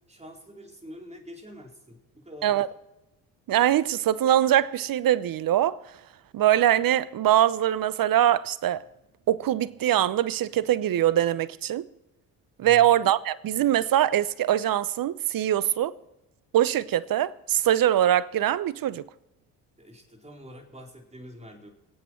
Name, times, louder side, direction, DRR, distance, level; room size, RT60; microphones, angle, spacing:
voice 1, 0.1-2.6 12.6-12.9 19.8-21.7, equal, 15° right, 4.3 m, -46 dB
voice 2, 3.5-5.8 6.3-8.8 9.3-11.8 12.6-15.9 16.5-19.0, right 12 dB, 45° right, 0.9 m, -23 dB
24.5 x 8.6 x 4.6 m
hypercardioid pair, 55°, 47 cm